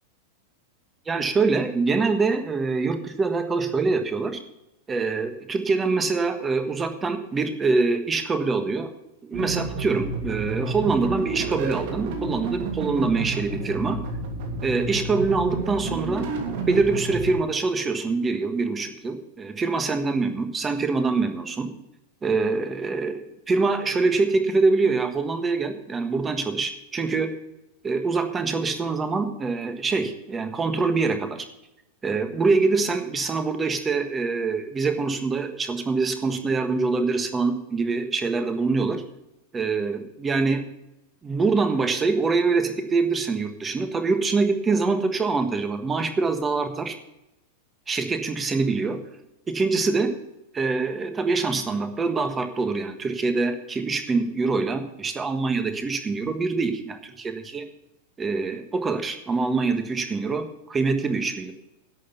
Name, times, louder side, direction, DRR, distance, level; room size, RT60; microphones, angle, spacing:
voice 1, 1.1-4.4 4.9-8.9 9.2-14.0 14.6-16.2 16.7-21.7 22.2-27.3 27.8-31.4 32.0-39.0 39.5-40.6 41.2-47.0 47.9-49.0 49.5-50.1 50.5-57.6 58.2-61.5, right 4 dB, 15° right, 8 dB, 1.4 m, -24 dB
sound 1, 9.3-17.3, right 3 dB, 55° right, 2.8 m, -30 dB
11.5 x 6.4 x 8.1 m, 0.88 s
supercardioid pair, 145°, 0 cm